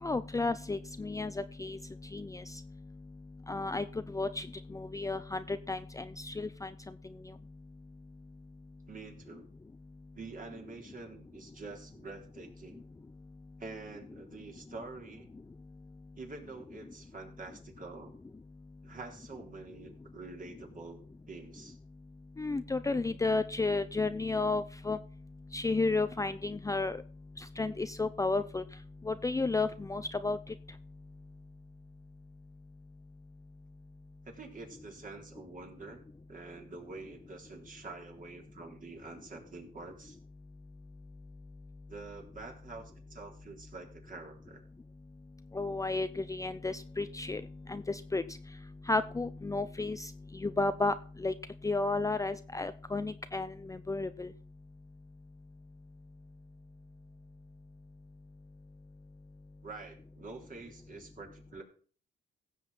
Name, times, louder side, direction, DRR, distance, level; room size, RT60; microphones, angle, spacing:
voice 1, 0.0-1.8 2.1-2.6 3.5-4.5 4.7-6.7 22.4-25.0 25.5-27.0 27.4-28.6 29.1-30.4 45.5-47.4 47.7-48.2 48.9-50.9 51.2-51.3 51.6-54.3, left 3 dB, 15° left, 11 dB, 0.6 m, -32 dB
voice 2, 8.9-9.5 10.2-12.8 13.6-15.3 16.1-18.1 18.8-21.0 21.3-21.8 34.3-36.0 36.3-40.2 41.9-44.6 59.6-61.6, right 3 dB, 40° right, 2 dB, 3.7 m, -47 dB
16.0 x 7.3 x 4.2 m, 0.41 s
cardioid pair, 90°, 20 cm